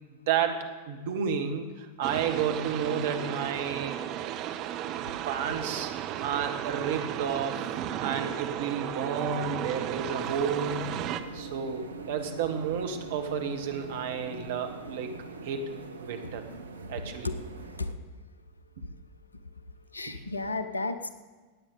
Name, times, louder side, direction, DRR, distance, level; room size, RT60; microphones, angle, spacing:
voice 1, 0.3-4.0 5.3-5.9 6.2-10.9 11.3-15.1 15.4-15.7 16.0-16.4 16.9-17.3 20.1-20.2, right 7 dB, 55° right, 6 dB, 1.2 m, -31 dB
sound 1, 2.0-11.2, right 11 dB, 40° right, 0.6 m, -34 dB
sound 2, 10.2-17.9, right 4 dB, 75° right, 0.8 m, -42 dB
voice 2, 19.9-21.1, left 3 dB, 80° left, 12 dB, 0.7 m, -32 dB
17.0 x 8.5 x 3.9 m, 1.4 s
figure-of-eight pair, 90°, 0 cm